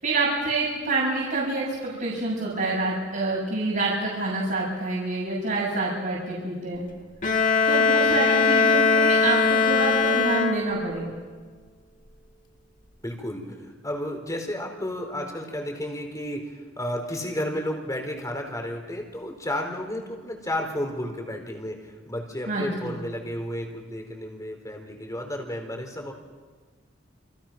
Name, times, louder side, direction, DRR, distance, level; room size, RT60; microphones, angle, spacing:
voice 1, 0.0-6.9 7.7-11.2 22.5-22.9, right 2 dB, 50° right, -5 dB, 7.0 m, -27 dB
Bowed string instrument, 7.2-11.0, left 4 dB, 45° left, 1.8 m, -21 dB
voice 2, 13.0-26.1, left 1 dB, 20° left, 3 dB, 4.3 m, -32 dB
29.5 x 26.0 x 6.0 m, 1.5 s
head